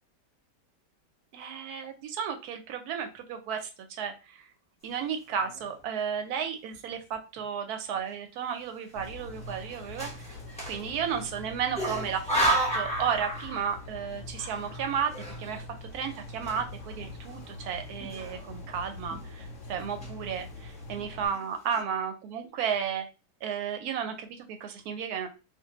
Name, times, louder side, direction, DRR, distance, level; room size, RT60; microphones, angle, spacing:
voice 1, 1.3-3.7 4.0-4.5 4.8-10.4 10.7-15.1 15.4-15.6 15.9-23.1 23.4-25.3, right 7 dB, 70° right, 6 dB, 1.0 m, -33 dB
sound 1, 5.3-5.8 6.4-6.5 6.7-7.4 7.9-8.1 9.0-11.4 11.8-13.9 14.2-17.0 17.3-17.5 18.0-18.7 19.1-19.4 19.8-20.4 21.0-21.1 21.3-21.8, equal, 5° left, 0.6 m, -34 dB
sound 2, 8.9-21.3, left 2 dB, 70° left, 0.7 m, -43 dB
2.5 x 2.5 x 2.8 m, 0.29 s
omnidirectional pair, 1.8 m